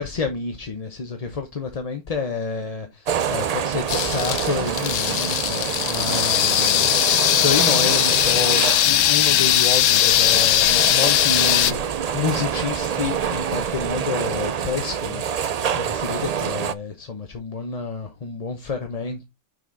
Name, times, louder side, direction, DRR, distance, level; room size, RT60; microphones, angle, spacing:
voice 1, 0.0-15.5 15.7-19.2, left 4 dB, 35° left, 0.9 m, -29 dB
sound 1, 3.1-16.7, right 8 dB, 60° right, 0.4 m, -27 dB
sound 2, 3.6-13.9, right 1 dB, 20° right, 2.0 m, -42 dB
sound 3, 3.9-11.7, left 13 dB, 85° left, 0.9 m, -19 dB
6.1 x 5.3 x 3.9 m
omnidirectional pair, 1.3 m